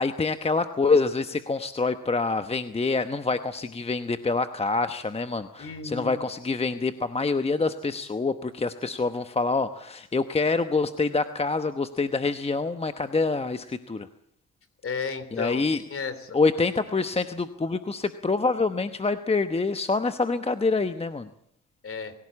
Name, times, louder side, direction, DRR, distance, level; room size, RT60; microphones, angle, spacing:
voice 1, 0.0-14.1 15.3-15.8 16.3-21.3, left 3 dB, 20° left, 9 dB, 1.0 m, -26 dB
voice 2, 5.6-6.2 14.8-15.6 15.9-16.4 21.8-22.1, left 5 dB, 45° left, 12 dB, 3.6 m, -33 dB
25.0 x 16.5 x 8.6 m, 0.72 s
cardioid pair, 90°, 30 cm